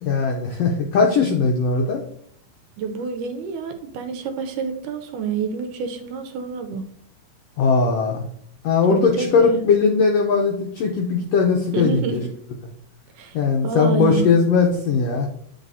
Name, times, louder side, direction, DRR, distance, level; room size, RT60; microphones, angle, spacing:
voice 1, 0.0-2.0 7.6-8.2 8.6-12.2 13.3-15.3, left 5 dB, 85° left, 1 dB, 1.4 m, -19 dB
voice 2, 2.8-6.8 8.9-9.6 11.7-12.2 13.2-13.4 13.6-14.3, right 5 dB, 80° right, 6 dB, 2.1 m, -28 dB
9.5 x 4.1 x 2.7 m, 0.64 s
omnidirectional pair, 3.8 m